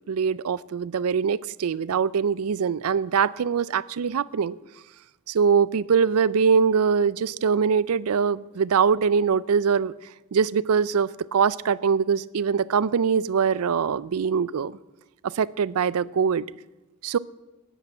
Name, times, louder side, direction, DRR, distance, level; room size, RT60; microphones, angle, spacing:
voice 1, 0.1-4.6 5.3-9.9 10.3-14.8 15.2-16.4 17.0-17.2, right 6 dB, 75° right, 20 dB, 0.4 m, -23 dB
10.0 x 8.3 x 8.4 m, 1.0 s
head